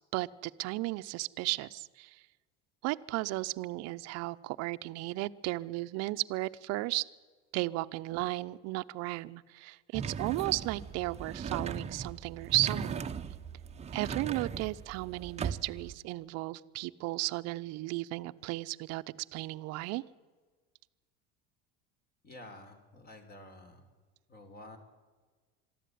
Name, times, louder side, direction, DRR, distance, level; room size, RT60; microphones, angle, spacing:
voice 1, 0.1-2.2 2.8-7.1 7.5-13.0 13.9-19.0 19.3-20.0, right 20 dB, 60° right, 12 dB, 0.8 m, -34 dB
sound 1, 9.9-15.9, right 6 dB, 20° right, 0.9 m, -38 dB
voice 2, 22.2-23.9 24.3-24.8, left 2 dB, 30° left, 6 dB, 3.8 m, -50 dB
22.5 x 13.5 x 9.4 m, 1.4 s
supercardioid pair, 120°, 29 cm